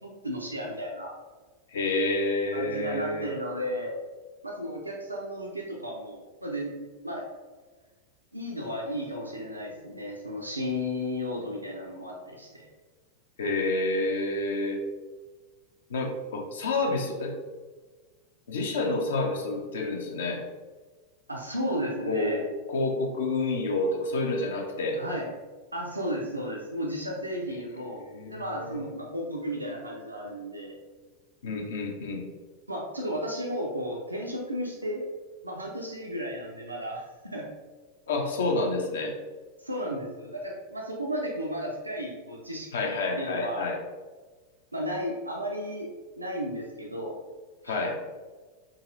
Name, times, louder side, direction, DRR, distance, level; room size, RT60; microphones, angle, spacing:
voice 1, 0.0-1.1 2.5-4.0 4.4-6.7 7.0-7.2 8.3-12.7 21.3-22.5 25.0-25.3 25.7-30.7 32.7-35.1 35.4-37.1 37.3-37.5 39.6-43.7 44.7-45.9 46.2-47.2 47.6-47.7, equal, 85° right, -1 dB, 0.4 m, -34 dB
voice 2, 1.7-3.3 13.4-14.8 15.9-17.3 18.5-20.4 22.1-22.4 22.7-25.0 28.1-28.9 31.4-32.2 38.1-39.1 42.7-43.8 47.6-48.0, left 2 dB, 60° left, 2 dB, 0.6 m, -29 dB
3.9 x 2.4 x 2.6 m, 1.4 s
figure-of-eight pair, 90°, 0 cm